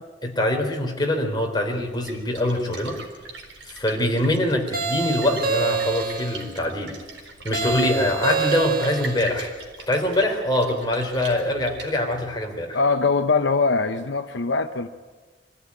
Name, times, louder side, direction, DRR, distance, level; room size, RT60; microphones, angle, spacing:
voice 1, 0.2-3.0 3.6-6.9 7.4-9.5 9.9-12.8, left 1 dB, 25° left, 1 dB, 3.8 m, -24 dB
Splash splatter, 1.8-12.4, right 3 dB, 70° right, 4.1 m, -42 dB
sound 1, 4.7-6.5 7.5-9.3, right 4 dB, 50° right, 1.9 m, -26 dB
voice 2, 12.7-14.9, left 4 dB, 70° left, 8 dB, 0.9 m, -22 dB
25.0 x 15.5 x 9.7 m, 1.4 s
head